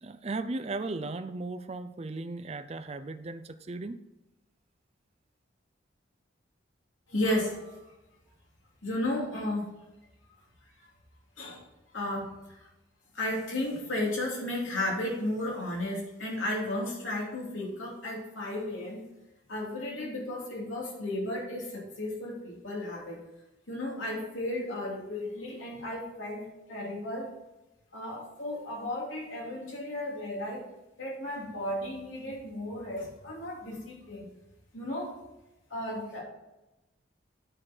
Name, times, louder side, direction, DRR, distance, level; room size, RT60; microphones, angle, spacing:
voice 1, 0.0-4.0, right 3 dB, 35° right, 10 dB, 0.5 m, -36 dB
voice 2, 7.1-7.8 8.8-9.7 11.4-11.6 11.9-12.6 13.1-19.0 19.5-23.2 23.7-27.3 27.9-30.6 31.0-34.3 34.7-35.1 35.7-36.2, left 1 dB, 90° left, -3 dB, 3.0 m, -34 dB
9.8 x 4.9 x 4.4 m, 0.99 s
head